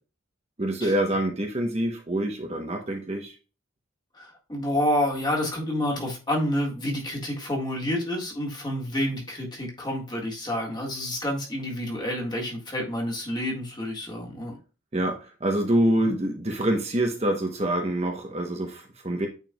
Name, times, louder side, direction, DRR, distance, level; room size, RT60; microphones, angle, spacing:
voice 1, 0.6-3.3 14.9-19.3, right 1 dB, 30° right, 2 dB, 0.8 m, -26 dB
voice 2, 4.1-14.5 16.0-16.1, left 1 dB, 20° left, -1 dB, 1.7 m, -29 dB
9.1 x 4.5 x 2.3 m, 0.33 s
head